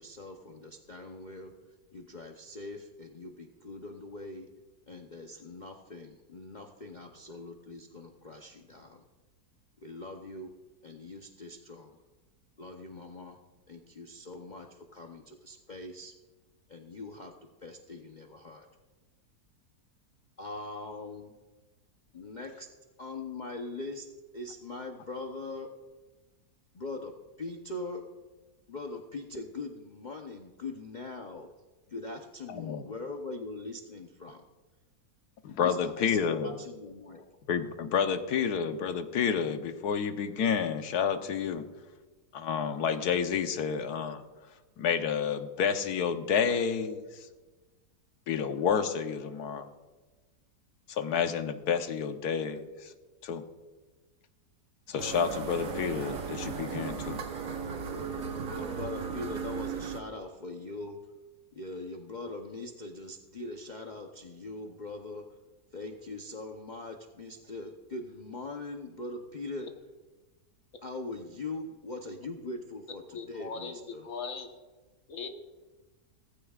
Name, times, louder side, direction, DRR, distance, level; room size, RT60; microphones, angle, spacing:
voice 1, 0.0-4.5 4.9-9.0 9.8-10.5 10.8-12.0 12.6-13.4 13.7-16.1 16.7-17.3 17.6-18.7 20.4-21.3 22.1-22.7 23.0-24.1 24.3-25.7 26.7-28.0 28.7-31.5 31.9-34.4 35.6-37.2 58.6-61.0 61.5-65.4 65.7-69.7 70.8-74.2, left 2 dB, 40° left, 2 dB, 0.7 m, -42 dB
voice 2, 35.4-36.5 37.5-41.6 42.3-44.2 44.8-47.3 48.3-49.7 50.9-52.9 53.2-53.4 54.9-57.2, left 7 dB, 80° left, 8 dB, 1.4 m, -30 dB
sound 1, 55.0-60.0, right 6 dB, 60° right, 1.4 m, -36 dB
voice 3, 73.1-73.7 74.0-74.5 75.1-75.3, left 5 dB, 60° left, 4 dB, 1.6 m, -38 dB
17.0 x 15.0 x 2.4 m, 1.2 s
omnidirectional pair, 1.7 m